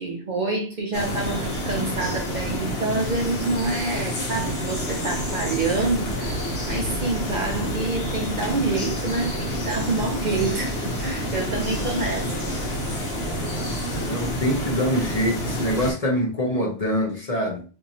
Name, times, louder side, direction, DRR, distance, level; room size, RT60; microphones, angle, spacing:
voice 1, 0.0-6.4 6.7-12.4, right 3 dB, 55° right, 0.6 m, -27 dB
sound 1, 0.9-15.9, equal, 75° left, 1.2 m, -28 dB
voice 2, 14.0-17.6, equal, 40° left, 0.7 m, -24 dB
2.8 x 2.5 x 2.7 m
omnidirectional pair, 1.1 m